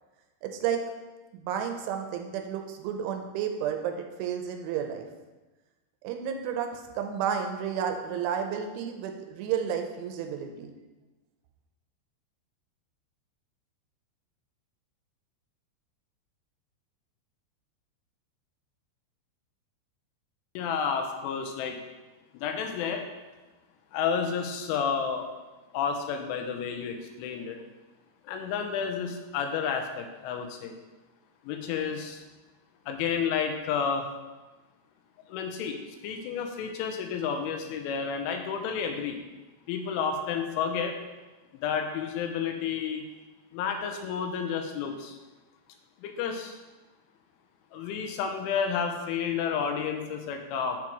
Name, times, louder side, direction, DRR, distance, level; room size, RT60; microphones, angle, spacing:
voice 1, 0.4-0.8 1.3-5.1 6.0-10.7, right 8 dB, 85° right, 5 dB, 3.0 m, -31 dB
voice 2, 20.5-21.8 22.3-23.1 23.9-25.3 25.7-27.6 28.2-30.8 31.4-32.2 32.9-34.1 35.3-35.8 36.0-39.2 39.7-41.0 41.6-43.0 43.5-45.2 46.0-46.6 47.7-50.8, left 6 dB, 85° left, 4 dB, 3.1 m, -31 dB
7.6 x 7.2 x 3.0 m, 1.2 s
omnidirectional pair, 5.6 m